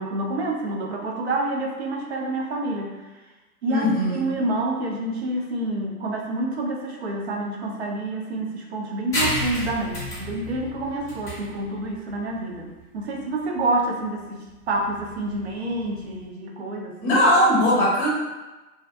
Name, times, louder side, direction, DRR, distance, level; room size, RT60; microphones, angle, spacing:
voice 1, 0.0-3.0 3.6-17.2, right 2 dB, 50° right, 0 dB, 0.4 m, -28 dB
voice 2, 3.7-4.2 17.0-18.1, left 1 dB, 25° left, -6 dB, 0.9 m, -19 dB
sound 1, 9.1-16.2, left 1 dB, 5° left, 0.5 m, -32 dB
2.6 x 2.1 x 2.4 m, 1.1 s
figure-of-eight pair, 110°, 45 cm